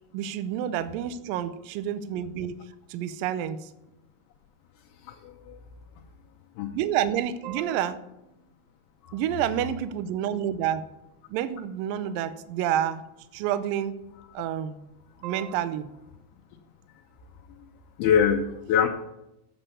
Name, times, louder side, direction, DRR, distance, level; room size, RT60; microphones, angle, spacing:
voice 1, 0.1-2.5 2.9-3.7 6.7-8.0 9.1-10.8 11.3-13.0 13.3-14.0 14.3-14.8 15.2-15.9, right 10 dB, 80° right, 12 dB, 2.1 m, -29 dB
voice 2, 5.0-5.6 6.6-6.7 9.0-9.1 18.0-18.9, left 8 dB, 75° left, 0 dB, 2.6 m, -24 dB
8.9 x 7.3 x 8.2 m, 0.90 s
omnidirectional pair, 4.6 m